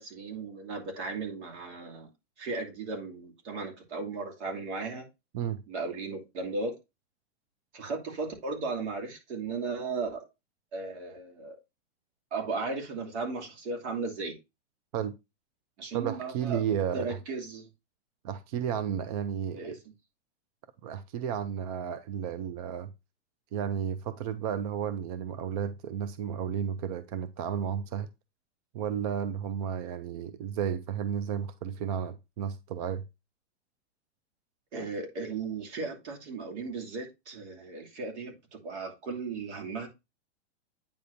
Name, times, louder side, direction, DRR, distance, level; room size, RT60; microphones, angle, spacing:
voice 1, 0.0-2.1 2.4-5.1 5.7-6.8 7.7-10.3 10.7-11.6 12.3-14.4 15.8-16.6 16.9-17.7 19.5-19.8 34.7-39.9, right 3 dB, 70° right, 2.8 m, -36 dB
voice 2, 15.9-17.2 18.2-19.8 20.8-22.9 23.5-28.1 28.7-33.0, right 8 dB, 35° right, 0.4 m, -33 dB
8.9 x 5.1 x 2.6 m
supercardioid pair, 155°, 35 cm